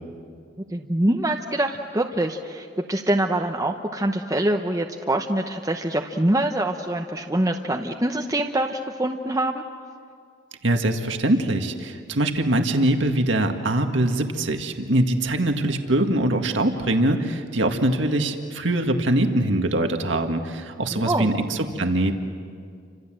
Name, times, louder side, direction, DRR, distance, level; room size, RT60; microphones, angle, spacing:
voice 1, 0.7-9.6 20.9-21.3, right 1 dB, 20° right, 2 dB, 0.9 m, -24 dB
voice 2, 10.6-22.2, right 1 dB, 75° right, 5 dB, 1.9 m, -23 dB
30.0 x 26.0 x 7.7 m, 2.2 s
head